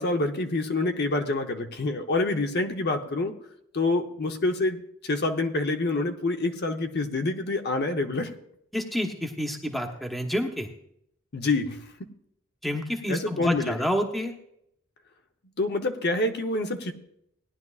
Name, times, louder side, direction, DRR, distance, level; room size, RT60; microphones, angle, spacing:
voice 1, 0.0-3.3 3.7-8.3 11.3-11.8 13.1-13.8 15.6-16.9, left 2 dB, 55° left, 5 dB, 0.9 m, -27 dB
voice 2, 8.7-10.7 12.6-14.3, equal, ahead, 3 dB, 1.0 m, -29 dB
18.0 x 11.0 x 2.4 m, 0.74 s
head